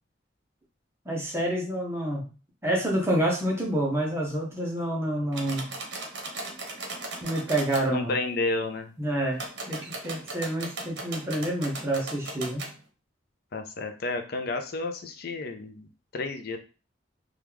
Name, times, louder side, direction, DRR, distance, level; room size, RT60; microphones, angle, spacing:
voice 1, 1.1-2.3 2.6-5.7 7.2-8.1 9.0-12.7, right 1 dB, 15° right, -2 dB, 0.7 m, -28 dB
sound 1, 5.3-7.9 9.3-12.7, right 2 dB, 60° right, 0.8 m, -37 dB
voice 2, 7.9-8.9 13.5-15.9 16.1-16.6, left 3 dB, 50° left, 7 dB, 0.4 m, -31 dB
3.0 x 2.3 x 3.4 m, 0.34 s
head